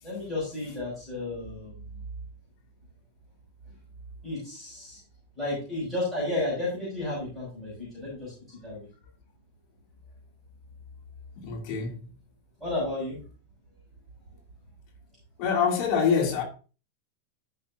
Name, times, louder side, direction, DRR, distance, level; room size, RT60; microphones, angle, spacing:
voice 1, 0.0-2.0 3.7-3.8 4.2-5.0 5.4-8.9 12.6-13.2, left 2 dB, 5° right, 5.5 m, -33 dB
voice 2, 11.4-12.0 15.4-16.4, left 6 dB, 40° left, 2.5 m, -25 dB
13.5 x 6.0 x 2.7 m
supercardioid pair, 170°, 0 cm